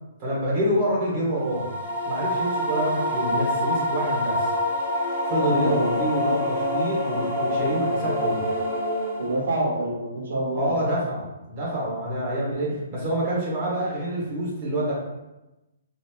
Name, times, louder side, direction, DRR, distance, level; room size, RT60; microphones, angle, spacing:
voice 1, 0.2-1.7 2.0-4.5 5.2-8.4 10.5-14.9, equal, 30° right, -6 dB, 1.3 m, -27 dB
sound 1, 1.4-9.5, left 1 dB, 5° right, 1.2 m, -26 dB
voice 2, 5.5-6.0 9.2-10.8, right 1 dB, 80° right, -5 dB, 1.2 m, -27 dB
3.0 x 2.8 x 2.3 m, 0.98 s
hypercardioid pair, 160°, 0 cm